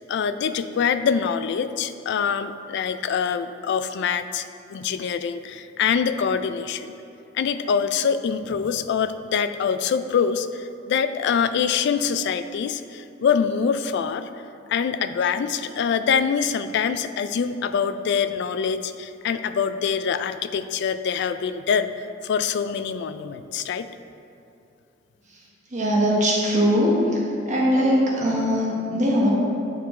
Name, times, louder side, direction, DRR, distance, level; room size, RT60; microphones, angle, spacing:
voice 1, 0.1-4.4 4.7-6.9 7.3-14.3 14.7-21.9 22.2-23.9, left 6 dB, 60° left, 11 dB, 0.3 m, -24 dB
voice 2, 25.7-27.0 27.5-29.3, equal, 40° right, -4 dB, 1.0 m, -21 dB
8.2 x 4.6 x 4.2 m, 2.6 s
head